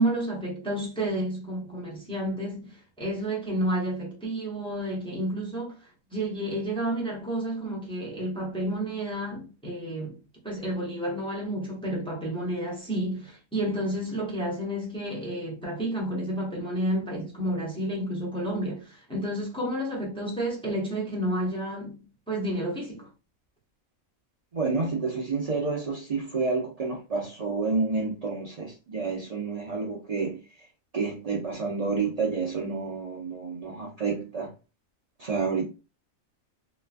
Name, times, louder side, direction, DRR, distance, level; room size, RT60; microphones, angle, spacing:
voice 1, 0.0-5.8 6.1-10.2 10.4-23.1, right 1 dB, 5° left, 0.5 m, -30 dB
voice 2, 24.5-30.4 30.9-34.5 35.2-35.6, right 4 dB, 85° right, 0.3 m, -29 dB
3.0 x 2.3 x 2.4 m
omnidirectional pair, 1.5 m